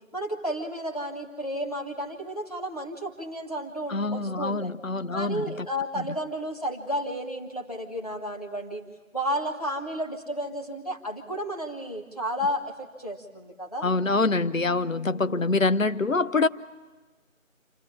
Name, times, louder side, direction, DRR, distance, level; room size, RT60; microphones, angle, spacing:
voice 1, 0.1-4.7 5.1-8.8 9.1-13.9 15.0-15.5, equal, 30° left, 0 dB, 1.7 m, -32 dB
voice 2, 3.9-5.4 13.8-16.5, left 3 dB, 75° left, 13 dB, 0.9 m, -25 dB
26.5 x 13.0 x 9.6 m, 1.3 s
figure-of-eight pair, 175°, 40 cm